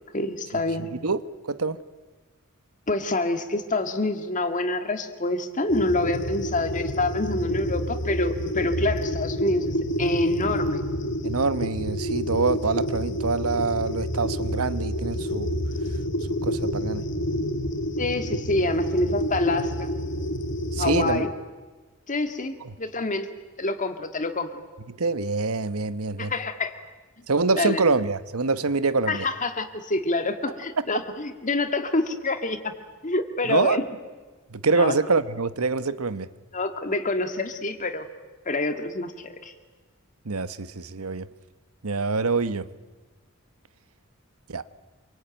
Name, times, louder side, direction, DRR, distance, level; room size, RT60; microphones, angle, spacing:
voice 1, 0.1-0.9 2.9-10.8 18.0-19.9 20.8-21.3 22.1-23.3 23.6-24.6 26.2-26.7 27.6-27.8 29.1-32.7 33.0-33.9 34.8-34.9 36.5-38.1 38.5-39.5, left 2 dB, 35° left, 7 dB, 2.0 m, -27 dB
sound 1, 5.7-21.2, equal, 60° left, 1.7 m, -28 dB
voice 2, 11.2-15.6 16.4-17.0 20.7-21.3 22.6-22.7 24.9-26.3 27.3-29.3 33.4-33.8 34.5-36.3 40.2-41.3 41.8-42.7 44.5-44.6, right 4 dB, 85° right, 14 dB, 1.1 m, -25 dB
27.0 x 24.0 x 9.1 m, 1.3 s
head